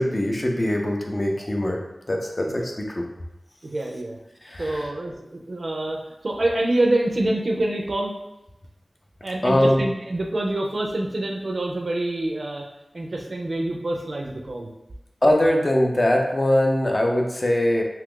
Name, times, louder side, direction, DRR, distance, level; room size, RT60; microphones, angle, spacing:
voice 1, 0.0-1.8 2.1-3.1 4.4-4.9 9.4-9.9 15.2-17.8, left 1 dB, 35° left, 1 dB, 0.5 m, -22 dB
voice 2, 3.6-4.2 4.6-8.1 9.2-12.7 12.9-14.7, right 1 dB, 60° right, 1 dB, 0.5 m, -26 dB
2.9 x 2.4 x 3.7 m, 0.90 s
wide cardioid pair, 80°, 0 cm